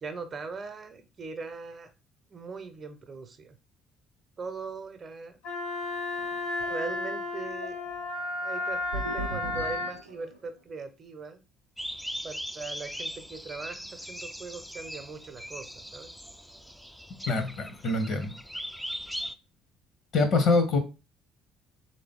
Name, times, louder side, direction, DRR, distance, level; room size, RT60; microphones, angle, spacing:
voice 1, 0.0-1.9 2.3-3.6 4.4-5.4 6.7-7.8 8.4-11.4 12.2-16.1, right 4 dB, 35° right, 8 dB, 0.7 m, -40 dB
Wind instrument woodwind instrument, 5.4-10.0, left 2 dB, 75° left, 1.4 m, -33 dB
sound 1, 6.1-10.5, right 2 dB, 90° right, 0.4 m, -40 dB
sound 2, 11.8-19.4, equal, ahead, 0.3 m, -40 dB
voice 2, 17.3-18.3 20.1-20.8, left 3 dB, 55° left, 8 dB, 0.8 m, -24 dB
3.5 x 2.7 x 3.6 m, 0.29 s
figure-of-eight pair, 50°, 0 cm